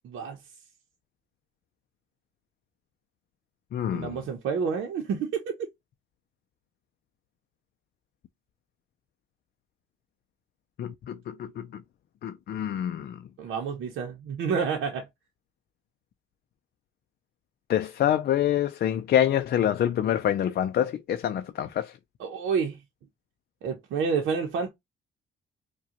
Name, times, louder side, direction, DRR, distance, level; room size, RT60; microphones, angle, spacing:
voice 1, 0.0-0.4 3.9-5.6 13.4-15.1 22.2-22.8 23.6-24.7, right 6 dB, 80° right, 0.8 m, -29 dB
voice 2, 3.7-4.2 10.8-11.8 12.2-13.2 17.7-21.9, left 10 dB, 55° left, 0.4 m, -26 dB
4.8 x 2.3 x 2.8 m
cardioid pair, 90°, 20 cm